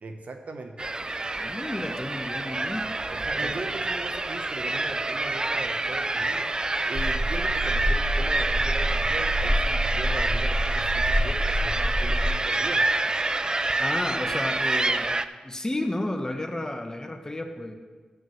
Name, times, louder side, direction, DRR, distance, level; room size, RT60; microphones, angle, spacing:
voice 1, 0.0-0.9 3.1-6.5 6.9-12.9, right 3 dB, 65° right, 5 dB, 0.9 m, -38 dB
sound 1, 0.8-15.2, right 2 dB, 30° right, 0.4 m, -27 dB
voice 2, 1.3-2.9 3.4-3.5 13.8-15.1 15.4-17.7, left 1 dB, 20° left, 5 dB, 1.1 m, -32 dB
sound 2, 7.0-12.3, equal, 45° left, 1.0 m, -27 dB
13.0 x 9.3 x 3.1 m, 1.4 s
cardioid pair, 45°, 3 cm